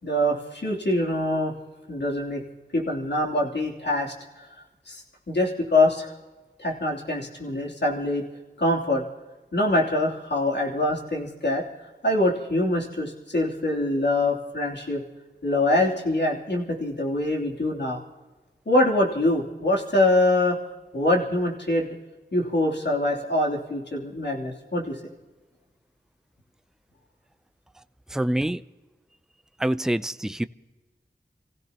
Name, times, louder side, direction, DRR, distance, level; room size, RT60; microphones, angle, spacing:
voice 1, 0.0-1.5 1.9-2.4 2.7-4.5 4.9-6.1 6.6-8.2 8.6-9.0 9.5-11.6 12.0-15.0 15.4-18.0 18.6-20.6 20.9-21.9 22.3-25.0, left 1 dB, 70° left, -2 dB, 3.1 m, -24 dB
voice 2, 28.1-28.6 29.6-30.4, right 1 dB, 5° right, 13 dB, 0.5 m, -25 dB
28.0 x 16.0 x 2.9 m, 1.2 s
wide cardioid pair, 55°, 18 cm